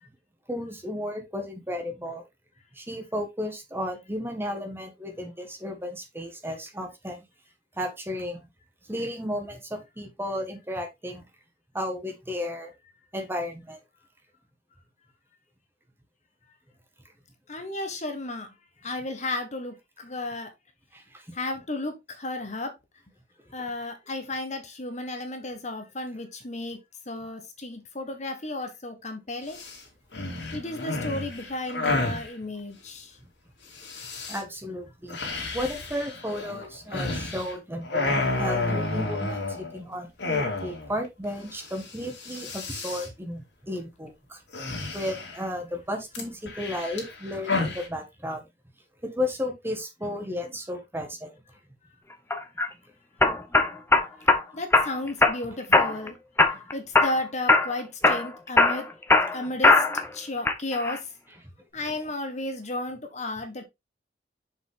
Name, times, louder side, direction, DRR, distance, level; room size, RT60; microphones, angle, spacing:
voice 1, 0.5-2.2 2.7-7.2 7.8-8.5 8.9-11.3 11.7-12.7 13.1-13.8 20.9-21.3 34.3-35.2 35.5-40.1 40.6-44.4 44.9-48.4 49.0-51.3 61.9-62.0, left 1 dB, 15° right, 1.7 m, -33 dB
voice 2, 17.5-18.5 18.8-20.5 21.3-22.7 23.5-26.8 27.1-29.6 30.5-33.2 54.5-56.1 56.7-58.9 59.3-59.8 60.1-61.0 61.7-63.7, left 2 dB, 40° left, 1.5 m, -33 dB
sound 1, 29.5-29.8 30.1-32.3 33.8-34.4 35.1-37.5 37.8-39.8 40.2-40.9 41.2-41.3 41.6-41.9 42.1-43.1 44.5-45.5 46.1-47.9, left 3 dB, 75° left, 2.8 m, -31 dB
sound 2, 52.3-52.7 53.2-54.4 54.7-55.4 55.7-56.1 56.4-57.2 57.5-57.7 58.0-60.1 60.5-61.0, left 3 dB, 15° left, 1.0 m, -20 dB
6.7 x 5.4 x 3.7 m
head